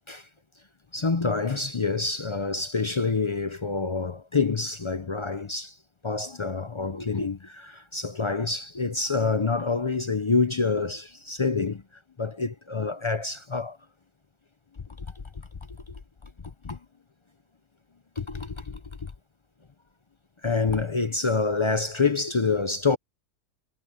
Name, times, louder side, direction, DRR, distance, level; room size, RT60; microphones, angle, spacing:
voice 1, 0.9-5.8 6.0-11.8 12.2-13.8 15.0-15.2 15.9-16.8 18.2-19.1 20.4-23.0, left 4 dB, 45° left, 0.3 m, -27 dB
omnidirectional pair, 1.6 m